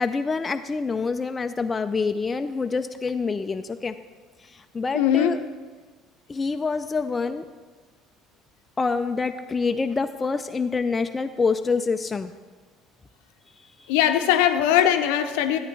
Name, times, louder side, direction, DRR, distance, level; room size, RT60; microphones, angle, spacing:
voice 1, 0.0-4.0 4.5-5.4 6.3-7.5 8.8-12.3 13.8-13.9, left 4 dB, 25° left, 8 dB, 0.4 m, -26 dB
voice 2, 4.9-5.4 13.9-15.6, left 10 dB, 70° left, 8 dB, 0.7 m, -20 dB
13.5 x 8.8 x 3.4 m, 1.4 s
hypercardioid pair, 60°, 0 cm